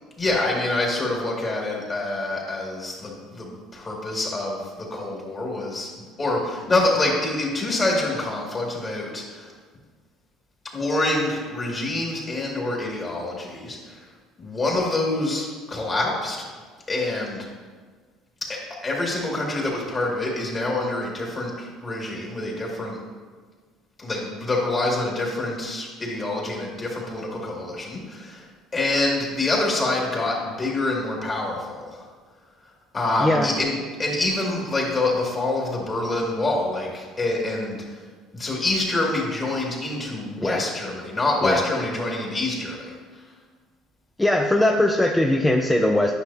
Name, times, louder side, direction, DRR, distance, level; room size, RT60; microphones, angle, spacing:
voice 1, 0.2-9.5 10.7-14.0 14.4-16.4 16.9-17.5 18.5-23.0 24.0-28.5 28.7-32.1 32.9-38.0 38.3-42.9, left 2 dB, 30° left, -2 dB, 2.3 m, -26 dB
voice 2, 33.2-33.6 40.4-40.6 41.4-41.6 44.2-46.1, left 1 dB, 10° left, 2 dB, 0.5 m, -20 dB
9.8 x 6.0 x 2.8 m, 1.5 s
supercardioid pair, 90°, 0 cm